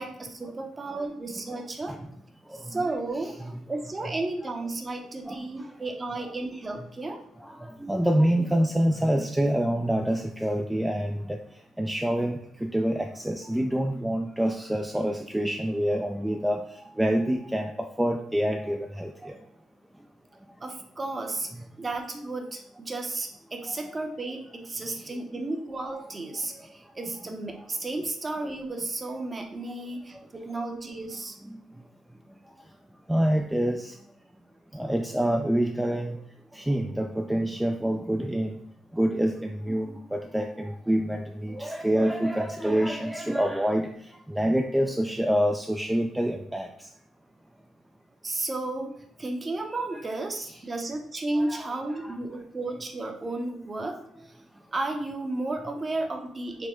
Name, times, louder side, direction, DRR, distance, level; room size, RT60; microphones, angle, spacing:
voice 1, 0.0-1.9 2.5-3.3 3.7-7.2 20.6-21.5 21.8-31.4 48.2-48.9 49.2-54.0 54.2-54.3 54.7-56.7, right 2 dB, 30° right, 4 dB, 0.7 m, -33 dB
voice 2, 3.2-3.6 4.0-4.1 5.3-5.4 7.4-11.4 11.8-16.6 17.0-17.7 18.0-19.4 23.7-23.8 33.1-33.9 34.7-36.2 36.5-38.6 38.9-43.9 44.3-46.7 51.4-51.7 52.0-52.2, right 1 dB, 5° right, 3 dB, 0.3 m, -26 dB
4.3 x 2.1 x 4.2 m, 0.69 s
cardioid pair, 90°, 0 cm